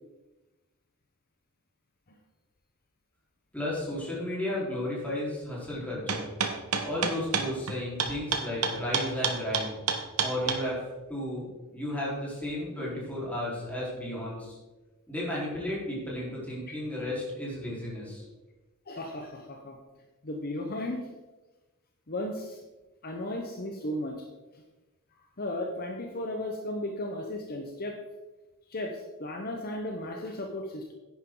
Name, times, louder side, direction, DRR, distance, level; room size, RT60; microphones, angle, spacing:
voice 1, 3.5-6.2 6.8-9.8 10.2-10.8 11.1-11.5 11.7-14.6 15.1-18.3, left 1 dB, 5° left, -6 dB, 4.2 m, -33 dB
sound 1, 6.1-10.6, right 6 dB, 85° right, 1.2 m, -28 dB
voice 2, 18.9-19.8 20.2-21.0 22.1-22.6 23.0-24.2 25.4-28.0 28.7-30.9, left 1 dB, 45° left, 3 dB, 1.0 m, -35 dB
10.5 x 9.9 x 3.9 m, 1.1 s
head